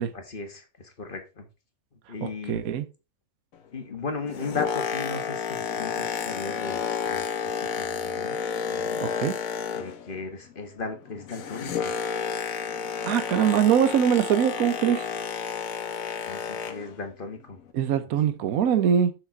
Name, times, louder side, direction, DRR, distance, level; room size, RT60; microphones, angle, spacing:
voice 1, 0.1-1.5 2.1-2.7 3.7-8.4 8.7-9.0 9.7-11.9 16.3-17.6, left 4 dB, 35° left, 1.6 m, -37 dB
voice 2, 2.2-2.8 9.0-9.3 13.0-15.1 17.7-19.1, right 8 dB, 75° right, 1.3 m, -23 dB
Boat Water vehicle, 4.1-10.2 10.5-17.0 17.6-17.7, left 7 dB, 70° left, 1.4 m, -31 dB
7.2 x 6.6 x 3.7 m
omnidirectional pair, 1.6 m